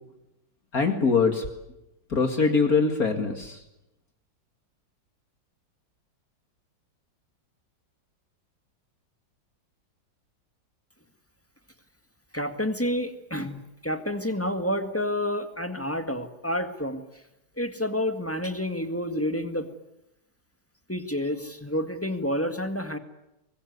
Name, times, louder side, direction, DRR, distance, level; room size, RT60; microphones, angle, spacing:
voice 1, 0.7-1.4 2.1-3.6, left 4 dB, 50° left, 5 dB, 2.6 m, -23 dB
voice 2, 12.3-17.0 17.6-19.7 20.9-23.0, left 1 dB, 10° left, 7 dB, 1.7 m, -29 dB
24.0 x 21.5 x 9.6 m, 0.91 s
omnidirectional pair, 2.0 m